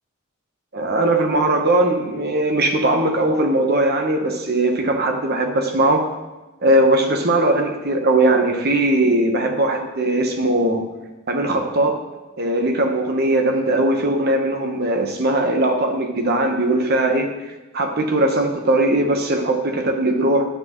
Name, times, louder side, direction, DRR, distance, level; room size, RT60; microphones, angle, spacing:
voice 1, 0.7-6.0 6.6-10.8 11.3-11.9 12.4-17.3 17.7-20.4, right 1 dB, 50° right, 3 dB, 1.1 m, -19 dB
10.5 x 7.9 x 3.1 m, 1.1 s
head